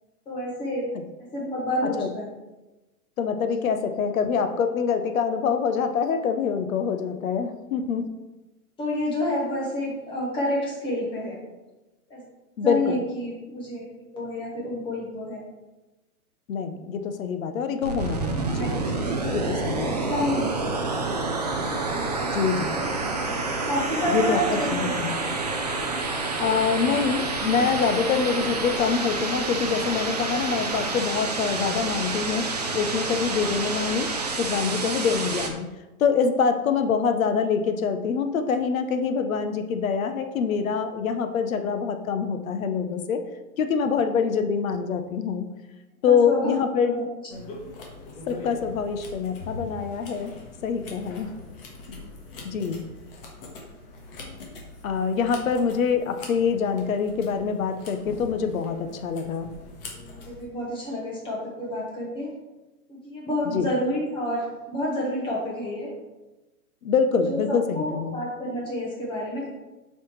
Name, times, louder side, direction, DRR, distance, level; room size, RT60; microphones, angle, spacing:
voice 1, 0.3-0.9 1.3-2.2 8.8-11.4 12.1-12.2 12.6-13.9 14.1-15.4 18.5-19.5 20.1-20.5 23.7-24.9 25.3-25.4 46.1-46.6 46.8-47.0 47.6-47.7 59.9-62.3 62.9-65.9 67.2-69.5, left 1 dB, 10° left, -4 dB, 1.3 m, -29 dB
voice 2, 3.2-8.1 12.6-13.0 16.5-18.9 19.3-20.0 22.3-22.7 24.1-25.2 26.4-32.5 32.7-34.1 34.4-35.7 36.0-43.2 43.6-45.5 46.0-47.0 48.3-50.3 50.6-51.3 52.4-52.8 54.8-59.5 63.4-63.7 66.8-68.2, left 6 dB, 65° left, 8 dB, 0.8 m, -25 dB
sound 1, 17.8-35.5, right 3 dB, 30° right, 0.4 m, -28 dB
sound 2, 47.3-60.4, left 2 dB, 40° left, 1.4 m, -42 dB
7.6 x 5.6 x 3.1 m, 1.1 s
hypercardioid pair, 160°, 45 cm